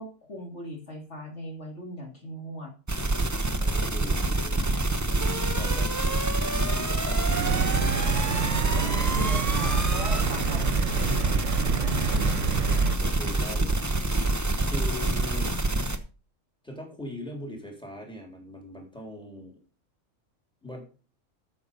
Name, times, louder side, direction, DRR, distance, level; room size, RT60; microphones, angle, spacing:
voice 1, 0.0-2.7 5.1-5.8 8.7-11.4 11.7-12.5, left 1 dB, 60° left, 2 dB, 2.8 m, -39 dB
sound 1, 2.9-16.0, right 2 dB, 15° right, 1.0 m, -26 dB
voice 2, 3.6-4.6 5.6-6.0 6.4-8.0 10.2-10.7 12.3-12.5 12.9-13.9 14.3-15.6 16.6-19.6 20.6-20.8, left 1 dB, 5° left, 1 dB, 3.6 m, -41 dB
sound 2, 7.3-13.0, right 9 dB, 75° right, 1.0 m, -29 dB
13.0 x 7.0 x 5.4 m, 0.35 s
omnidirectional pair, 1.3 m